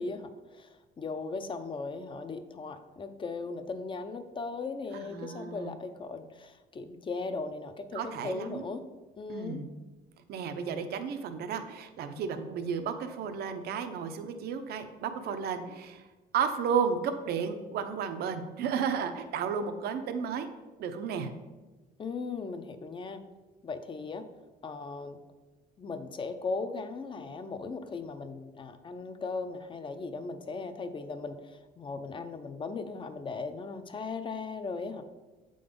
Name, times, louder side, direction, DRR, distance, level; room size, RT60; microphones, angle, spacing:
voice 1, 0.0-8.8 9.2-9.6 22.0-23.2 23.6-24.3 24.6-25.2 25.8-35.0, left 4 dB, 30° left, 9 dB, 0.6 m, -38 dB
voice 2, 4.9-5.7 7.9-8.6 9.3-9.6 10.3-16.0 16.3-20.5 20.8-21.3, right 6 dB, 70° right, 8 dB, 0.7 m, -33 dB
7.6 x 3.9 x 5.2 m, 1.2 s
cardioid pair, 110°, 17 cm